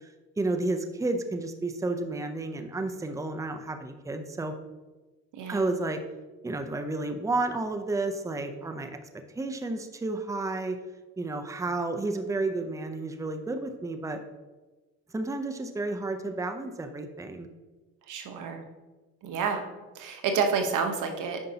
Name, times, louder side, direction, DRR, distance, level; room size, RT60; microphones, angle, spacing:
voice 1, 0.4-4.5 5.5-6.0 6.4-9.0 9.3-10.8 11.2-14.2 15.1-17.5, right 2 dB, 10° right, 7 dB, 0.6 m, -31 dB
voice 2, 5.4-5.7 18.1-18.6 19.2-19.6 19.9-21.4, right 5 dB, 85° right, 5 dB, 1.0 m, -29 dB
9.6 x 5.2 x 2.8 m, 1.2 s
cardioid pair, 90°, 30 cm